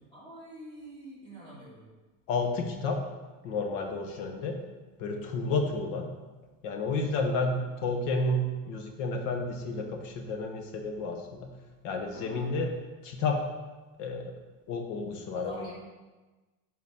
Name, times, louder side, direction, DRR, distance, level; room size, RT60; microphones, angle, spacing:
voice 1, 0.0-1.8 12.1-12.6 15.3-15.7, equal, 15° left, -8 dB, 2.8 m, -46 dB
voice 2, 2.3-3.0 3.4-4.6 5.0-6.1 6.6-11.5 11.8-12.7 13.0-13.4 14.0-14.3 14.7-15.6, left 3 dB, 65° left, 4 dB, 1.4 m, -31 dB
9.6 x 4.2 x 5.5 m, 1.2 s
cardioid pair, 180°, 38 cm